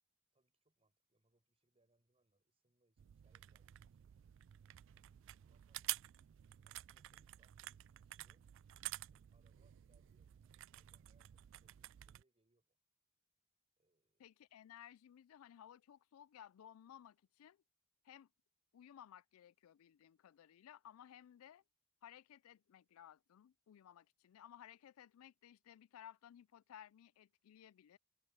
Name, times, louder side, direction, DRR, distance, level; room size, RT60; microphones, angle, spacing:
voice 1, 0.3-4.1 4.9-6.0 6.6-8.5 9.1-12.8 13.8-14.4, right 2 dB, 30° right, 5.1 m, -81 dB
sound 1, 3.0-12.2, right 16 dB, 60° right, 0.3 m, -50 dB
voice 2, 14.2-17.6 18.0-18.3 18.7-21.6 22.0-28.0, left 10 dB, 85° left, 0.3 m, -59 dB
head